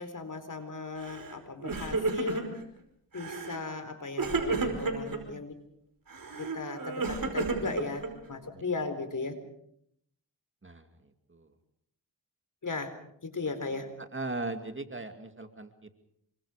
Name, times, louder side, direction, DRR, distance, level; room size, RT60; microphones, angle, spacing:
voice 1, 0.0-2.6 3.1-5.6 6.4-9.4 12.6-12.9 13.2-13.9, left 4 dB, 45° left, 10 dB, 4.2 m, -37 dB
Crying sobbing, 1.0-1.3 1.6-2.6 3.1-3.6 4.2-5.2 6.1-8.3, right 3 dB, 50° right, 5.1 m, -32 dB
voice 2, 14.1-15.9, right 2 dB, 30° right, 7 dB, 2.5 m, -38 dB
27.5 x 24.0 x 5.1 m, 0.72 s
cardioid pair, 65°, 42 cm